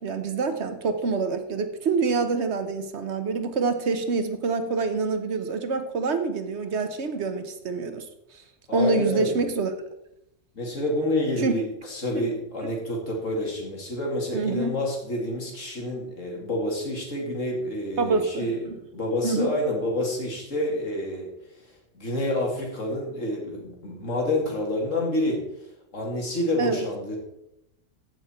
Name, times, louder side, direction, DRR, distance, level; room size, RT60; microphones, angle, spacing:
voice 1, 0.0-8.0 8.7-9.7 11.4-11.5 14.3-14.8 18.0-18.7 19.2-19.5 26.6-26.8, right 4 dB, 65° right, 9 dB, 1.2 m, -26 dB
voice 2, 8.7-9.4 10.5-18.6 18.9-21.3 21.9-25.4 25.9-27.2, left 1 dB, 90° left, -1 dB, 2.8 m, -28 dB
15.0 x 5.9 x 4.3 m, 0.85 s
omnidirectional pair, 1.3 m